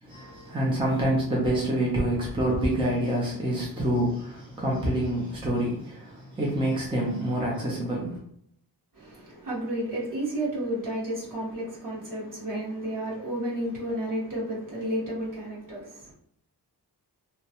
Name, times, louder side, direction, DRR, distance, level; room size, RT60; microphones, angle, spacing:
voice 1, 0.0-8.2, right 1 dB, 15° right, 0.6 m, -27 dB
voice 2, 8.9-16.1, right 1 dB, 50° right, 1.5 m, -32 dB
2.9 x 2.2 x 2.9 m
wide cardioid pair, 125°, 40 cm